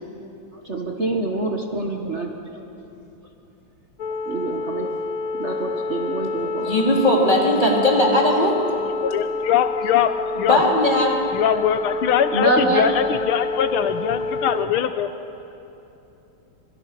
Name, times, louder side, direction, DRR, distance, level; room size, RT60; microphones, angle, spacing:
voice 1, 0.5-2.6 4.3-4.9 5.3-6.8 12.3-12.9, right 2 dB, 35° right, 1 dB, 1.6 m, -25 dB
sound 1, 4.0-14.7, left 3 dB, 60° left, 1.0 m, -28 dB
voice 2, 6.6-8.6 10.4-11.2, left 1 dB, 20° left, -2 dB, 4.0 m, -18 dB
voice 3, 9.0-10.6 11.3-15.1, left 9 dB, 80° left, 10 dB, 1.7 m, -22 dB
26.0 x 24.0 x 6.1 m, 2.9 s
omnidirectional pair, 2.3 m